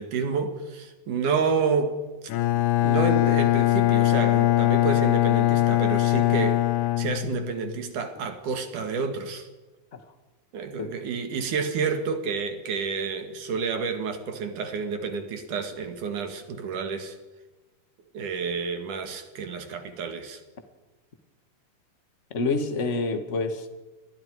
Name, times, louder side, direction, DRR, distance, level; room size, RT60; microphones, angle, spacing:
voice 1, 0.0-2.0 2.6-6.6 7.0-9.5 10.5-17.2 18.1-20.4, right 5 dB, 65° right, 6 dB, 3.4 m, -29 dB
Bowed string instrument, 2.3-7.8, left 16 dB, 75° left, 2.1 m, -22 dB
voice 2, 22.3-23.7, left 3 dB, 30° left, 7 dB, 1.5 m, -27 dB
29.0 x 21.0 x 4.9 m, 1.2 s
omnidirectional pair, 3.9 m